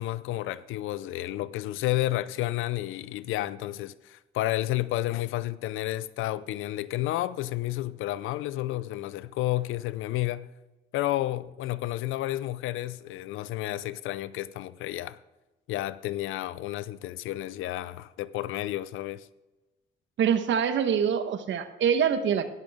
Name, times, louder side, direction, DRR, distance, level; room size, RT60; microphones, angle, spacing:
voice 1, 0.0-10.5 10.9-15.2 15.7-19.3, left 15 dB, 90° left, 0.5 m, -31 dB
voice 2, 20.2-22.5, right 8 dB, 70° right, 1.2 m, -25 dB
13.0 x 11.0 x 3.6 m
cardioid pair, 90°, 20 cm